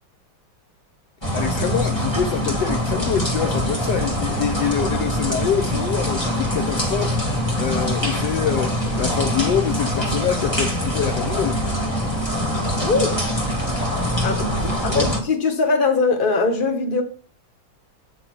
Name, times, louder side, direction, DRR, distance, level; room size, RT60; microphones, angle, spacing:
sound 1, 1.2-15.2, equal, 15° left, 1.9 m, -23 dB
voice 1, 1.3-11.6 14.6-15.1, left 9 dB, 70° left, 1.2 m, -25 dB
voice 2, 12.8-13.2 14.2-17.0, left 4 dB, 30° left, 1.3 m, -21 dB
9.0 x 3.9 x 6.2 m
omnidirectional pair, 2.1 m